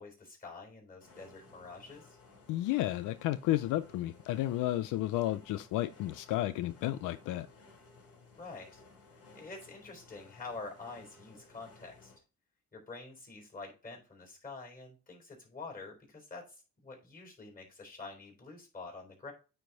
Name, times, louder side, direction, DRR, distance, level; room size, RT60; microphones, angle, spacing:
voice 1, 0.0-2.2 8.3-8.8 9.3-12.1 12.7-19.3, left 3 dB, 30° left, 3.5 m, -47 dB
sound 1, 1.0-12.2, left 3 dB, 55° left, 3.5 m, -58 dB
voice 2, 2.5-7.5, left 15 dB, 85° left, 0.4 m, -32 dB
9.1 x 3.3 x 4.0 m
cardioid pair, 90°, 30 cm